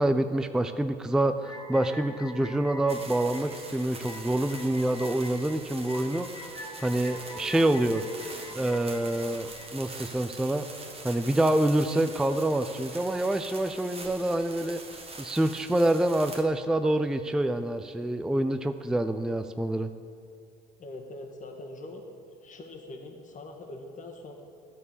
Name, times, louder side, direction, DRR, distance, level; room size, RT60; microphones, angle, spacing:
voice 1, 0.0-6.3 6.8-8.0 8.5-10.6 11.0-14.8 15.2-19.9, right 1 dB, 5° right, 9 dB, 0.4 m, -26 dB
sound 1, 1.4-9.6, left 1 dB, 15° left, 1.7 m, -44 dB
sound 2, 2.9-16.4, right 3 dB, 30° right, 1.4 m, -44 dB
voice 2, 20.8-22.0 22.4-24.3, left 2 dB, 35° left, 2 dB, 1.5 m, -42 dB
12.0 x 4.3 x 6.9 m, 2.4 s
hypercardioid pair, 70°, 21 cm